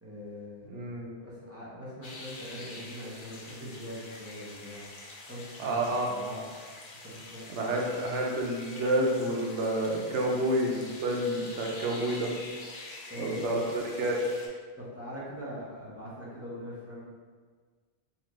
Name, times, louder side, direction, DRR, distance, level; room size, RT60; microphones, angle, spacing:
voice 1, 0.0-0.8 1.2-4.9 5.3-6.4 7.0-7.8 13.1-13.6 14.8-17.0, equal, 15° right, -9 dB, 0.8 m, -42 dB
voice 2, 0.7-1.1 5.6-6.1 7.5-12.3 13.2-14.2, right 1 dB, 85° right, -1 dB, 1.0 m, -29 dB
sound 1, 2.0-14.5, left 2 dB, 55° left, 0.7 m, -46 dB
4.1 x 2.4 x 3.0 m, 1.5 s
omnidirectional pair, 1.2 m